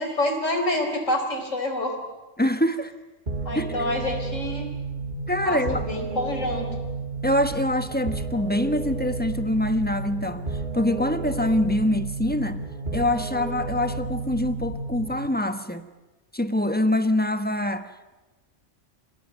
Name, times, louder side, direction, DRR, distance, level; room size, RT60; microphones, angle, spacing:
voice 1, 0.0-1.9 3.4-4.7 5.4-6.7, left 1 dB, 85° left, 3 dB, 5.0 m, -27 dB
voice 2, 2.4-2.9 3.5-3.9 5.3-5.8 7.2-12.6 12.9-15.9 16.3-18.1, left 1 dB, 10° left, 9 dB, 1.2 m, -25 dB
sound 1, 3.3-15.3, right 3 dB, 40° right, 1.9 m, -32 dB
27.5 x 18.0 x 9.5 m, 1.1 s
omnidirectional pair, 1.3 m